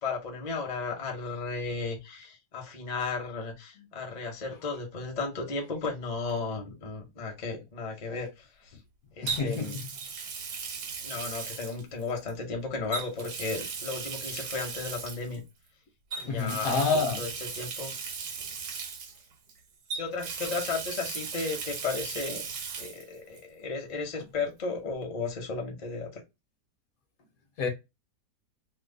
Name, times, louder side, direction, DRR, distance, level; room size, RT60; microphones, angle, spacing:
voice 1, 0.0-8.8 9.2-9.8 11.0-15.4 16.2-16.9 17.2-17.3 17.5-17.9 19.9-22.4 22.8-26.2, left 4 dB, 45° left, 0.5 m, -34 dB
Water tap faucet, 6.3-6.5 9.3-12.3 12.9-15.4 16.1-19.5 19.9-23.0 23.3-23.4 25.0-25.1, right 5 dB, 65° right, 1.2 m, -37 dB
voice 2, 9.2-9.7 16.2-17.2 27.6-27.7, left 4 dB, 65° left, 1.0 m, -28 dB
2.9 x 2.0 x 3.6 m
omnidirectional pair, 1.8 m